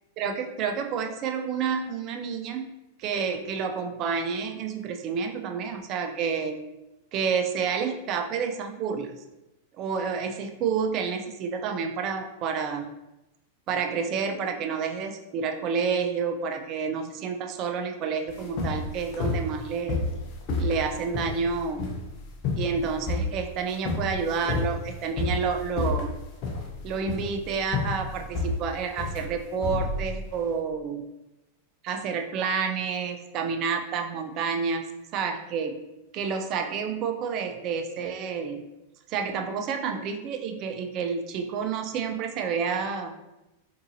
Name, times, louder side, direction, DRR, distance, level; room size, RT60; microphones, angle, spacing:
voice 1, 0.2-2.7 3.0-6.6 7.1-9.1 9.8-12.9 13.7-20.0 20.6-21.8 22.6-26.1 26.8-31.1 31.8-34.8 35.1-35.8 36.1-38.6 39.1-43.1, right 6 dB, 45° right, 5 dB, 0.4 m, -29 dB
sound 1, 18.3-30.5, left 3 dB, 50° left, 0.7 m, -30 dB
3.7 x 2.7 x 2.7 m, 0.97 s
hypercardioid pair, 105°, 0 cm